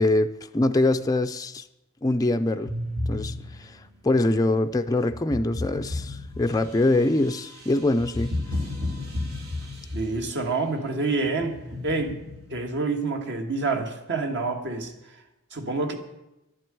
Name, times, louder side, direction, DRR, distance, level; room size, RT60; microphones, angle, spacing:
voice 1, 0.0-1.6 2.0-2.7 3.1-8.3, left 2 dB, 15° left, 0.4 m, -24 dB
sound 1, 2.7-3.9 5.1-10.5 11.2-12.6, left 2 dB, 80° right, 2.9 m, -33 dB
voice 2, 9.9-12.2 12.5-14.9 15.5-16.0, right 3 dB, 55° right, 1.7 m, -27 dB
11.5 x 7.7 x 9.9 m
head